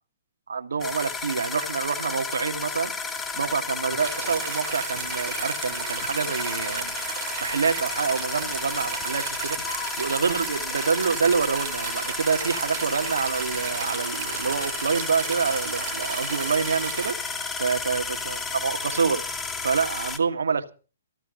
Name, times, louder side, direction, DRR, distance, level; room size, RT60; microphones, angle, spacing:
voice 1, 0.5-2.9 3.4-6.9 7.4-9.6 10.0-19.2 19.6-20.7, right 5 dB, 80° right, 1.8 m, -27 dB
sound 1, 0.8-20.2, left 4 dB, 15° left, 1.9 m, -32 dB
sound 2, 3.3-4.5 4.9-5.2 5.6-6.2 6.6-7.1 7.5-7.8 8.4-8.9 9.5-10.2, left 8 dB, 55° left, 3.8 m, -45 dB
sound 3, 4.0-17.1, right 10 dB, 55° right, 1.6 m, -35 dB
15.5 x 13.0 x 5.2 m
hypercardioid pair, 130°, 0 cm